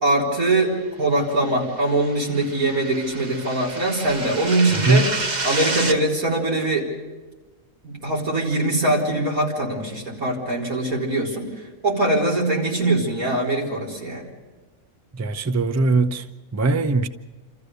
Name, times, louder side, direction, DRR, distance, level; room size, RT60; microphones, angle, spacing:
voice 1, 0.0-5.1 5.4-6.9 7.8-14.3, right 2 dB, 85° right, 4.7 m, -22 dB
sound 1, 1.5-6.0, right 2 dB, 35° right, 1.3 m, -29 dB
voice 2, 15.1-16.3 16.5-17.1, right 3 dB, 15° right, 0.6 m, -20 dB
28.0 x 14.5 x 6.8 m
omnidirectional pair, 1.5 m